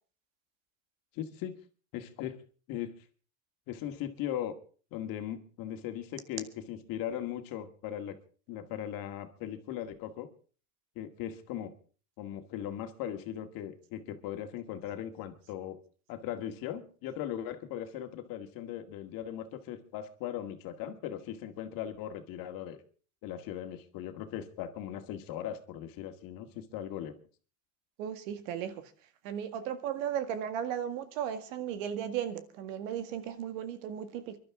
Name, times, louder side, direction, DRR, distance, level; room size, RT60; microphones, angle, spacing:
voice 1, 1.1-1.6 1.9-2.4 2.7-2.9 3.7-4.5 4.9-8.2 8.5-10.3 11.0-11.7 12.2-15.8 16.1-22.8 23.2-27.1, left 10 dB, 60° left, 2.0 m, -38 dB
voice 2, 28.0-28.9 29.2-34.4, right 9 dB, 75° right, 1.9 m, -36 dB
24.5 x 12.0 x 3.6 m
supercardioid pair, 105°, 39 cm